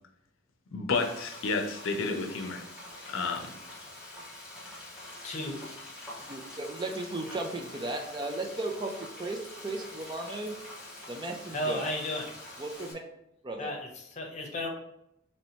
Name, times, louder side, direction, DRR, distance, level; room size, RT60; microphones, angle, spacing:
voice 1, 0.7-2.6 3.1-3.5, left 4 dB, 80° left, 4 dB, 0.6 m, -31 dB
Frying (food), 0.9-12.9, left 1 dB, 5° right, 1.0 m, -46 dB
voice 2, 5.2-5.6 11.5-12.3 13.6-14.7, left 1 dB, 35° left, 1 dB, 0.8 m, -34 dB
voice 3, 6.2-10.5 11.1-11.9 12.6-13.0 13.4-13.7, right 2 dB, 25° right, 3 dB, 0.4 m, -35 dB
3.1 x 2.9 x 4.4 m, 0.80 s
head